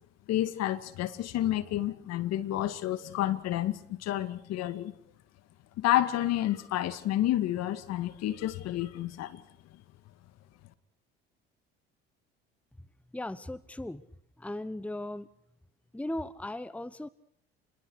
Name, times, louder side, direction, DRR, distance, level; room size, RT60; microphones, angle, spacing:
voice 1, 0.3-4.9 5.8-9.4, left 13 dB, 60° left, 2.1 m, -30 dB
voice 2, 13.1-14.0 14.4-15.3 15.9-17.1, left 1 dB, 5° left, 1.1 m, -37 dB
29.5 x 22.0 x 6.5 m
hypercardioid pair, 70°, 30 cm